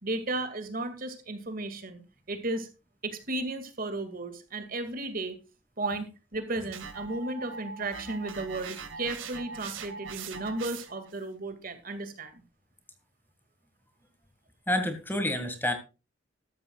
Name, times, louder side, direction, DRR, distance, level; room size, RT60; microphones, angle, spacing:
voice 1, 0.0-2.0 2.3-2.7 3.0-5.4 5.8-12.4, right 2 dB, 45° right, 9 dB, 2.3 m, -34 dB
sound 1, 6.7-11.1, right 5 dB, 85° right, 2.0 m, -41 dB
voice 2, 14.7-15.7, left 1 dB, 10° left, 8 dB, 1.9 m, -28 dB
14.0 x 13.0 x 2.4 m, 0.31 s
head